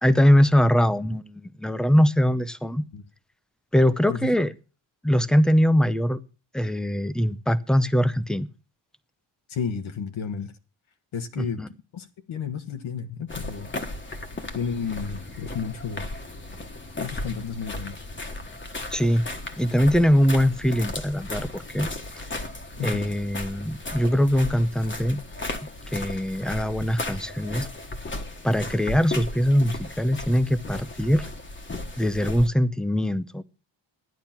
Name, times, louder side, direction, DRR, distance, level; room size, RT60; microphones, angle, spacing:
voice 1, 0.0-2.8 3.7-4.5 5.0-6.2 6.5-8.5 11.4-11.7 18.9-19.2 19.6-21.9 22.8-25.2 25.9-27.7 28.4-31.2 32.0-33.4, equal, ahead, 0.6 m, -22 dB
voice 2, 9.5-10.5 11.1-11.6 11.9-13.7 14.5-16.1 17.0-18.1 22.8-23.0, left 6 dB, 70° left, 1.6 m, -32 dB
sound 1, 13.3-32.5, left 2 dB, 25° left, 1.4 m, -36 dB
14.0 x 10.5 x 5.9 m
wide cardioid pair, 165°, 48 cm